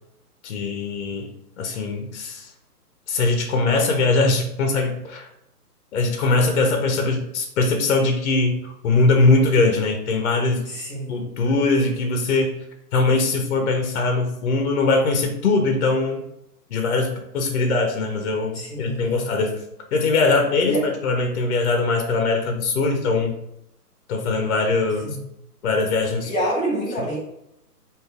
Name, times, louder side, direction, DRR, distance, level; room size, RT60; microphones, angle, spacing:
voice 1, 0.4-1.3 1.6-2.5 3.1-5.3 5.9-10.7 11.1-12.5 12.9-16.2 16.7-19.6 19.9-23.3 24.1-25.2 25.6-26.3, left 3 dB, 45° left, 3 dB, 0.7 m, -21 dB
voice 2, 10.6-11.2 18.5-19.2 20.6-20.8 25.0-25.2 26.2-27.2, right 1 dB, 15° left, -4 dB, 1.2 m, -27 dB
4.9 x 2.6 x 2.4 m, 0.81 s
hypercardioid pair, 150°, 47 cm